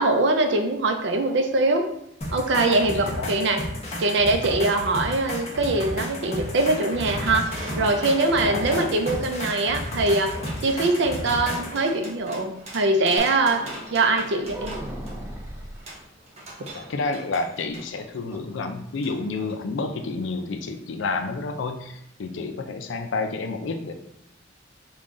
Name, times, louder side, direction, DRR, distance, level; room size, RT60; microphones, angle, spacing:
voice 1, 0.0-1.9 2.3-3.7 4.0-7.5 7.8-10.3 10.6-14.8, right 2 dB, 65° right, 5 dB, 0.5 m, -22 dB
sound 1, 2.2-11.8 13.2-13.3, left 1 dB, 35° left, 0.8 m, -33 dB
voice 2, 2.7-3.3 8.4-8.9 16.7-23.9, left 3 dB, 75° left, 6 dB, 0.4 m, -30 dB
sound 2, 5.7-17.9 19.0-19.2 19.5-19.6, right 1 dB, 35° right, 0.9 m, -41 dB
sound 3, 14.4-15.9 17.6-18.6 18.8-18.9 19.3-19.6, right 1 dB, 15° right, 0.4 m, -37 dB
3.8 x 2.3 x 3.7 m, 0.77 s
head